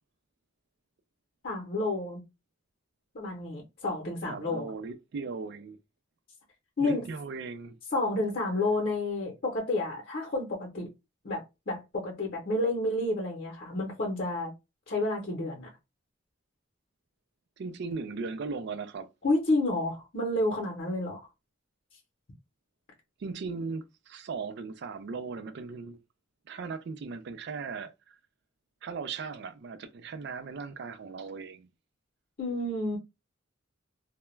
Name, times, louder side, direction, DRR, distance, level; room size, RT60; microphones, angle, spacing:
voice 1, 1.4-2.2 3.1-4.7 6.8-7.0 7.9-10.9 11.2-14.5 14.9-15.7 19.2-21.2 32.4-33.0, left 2 dB, 50° left, 0.7 m, -30 dB
voice 2, 4.2-5.8 6.8-7.8 17.6-19.1 23.2-26.0 26.5-28.2 28.8-31.7, right 4 dB, 60° right, 0.4 m, -38 dB
2.3 x 2.1 x 3.0 m
head